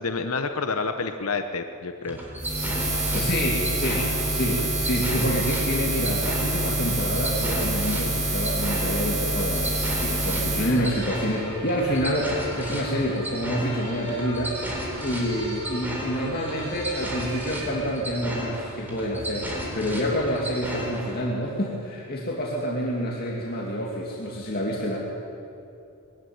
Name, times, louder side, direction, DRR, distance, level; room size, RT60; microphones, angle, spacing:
voice 1, 0.0-2.2 10.6-11.0, left 4 dB, 85° left, 7 dB, 1.0 m, -29 dB
sound 1, 2.0-21.2, equal, 10° right, 3.8 m, -35 dB
sound 2, 2.2-17.7, right 1 dB, 80° right, 6.8 m, -43 dB
Buzz, 2.4-10.7, right 2 dB, 45° right, 4.7 m, -27 dB
voice 2, 3.1-25.0, equal, 45° left, -3 dB, 2.5 m, -28 dB
21.5 x 14.5 x 9.5 m, 2.7 s
head